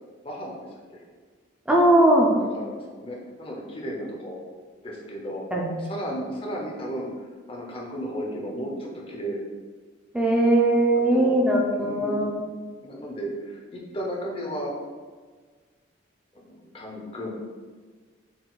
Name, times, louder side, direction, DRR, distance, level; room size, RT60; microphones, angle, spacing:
voice 1, 0.2-1.0 2.5-4.4 4.8-5.4 5.8-7.1 7.5-9.4 11.1-11.5 11.8-12.2 12.8-14.7 16.4-17.3, equal, 30° left, -2 dB, 0.7 m, -34 dB
voice 2, 1.7-2.3 5.5-5.8 10.1-12.4, right 1 dB, 5° right, -2 dB, 0.4 m, -20 dB
4.0 x 4.0 x 2.3 m, 1.5 s
head